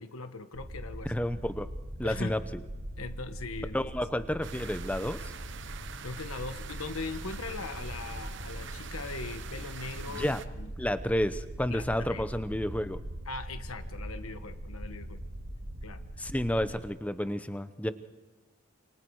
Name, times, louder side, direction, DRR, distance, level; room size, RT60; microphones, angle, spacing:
voice 1, 0.0-1.1 2.0-2.3 3.0-3.9 6.0-10.7 11.7-12.3 13.3-15.2 15.8-16.0 16.3-16.4, left 3 dB, 90° left, 8 dB, 1.4 m, -40 dB
sound 1, 0.5-16.8, right 1 dB, 90° right, 2.9 m, -41 dB
voice 2, 1.0-1.7 2.0-2.6 3.7-5.3 10.1-10.4 10.8-13.0 16.2-17.9, left 1 dB, 5° left, 11 dB, 0.8 m, -31 dB
sound 2, 4.4-10.5, right 6 dB, 60° right, 1.1 m, -45 dB
28.5 x 27.5 x 4.8 m, 1.1 s
head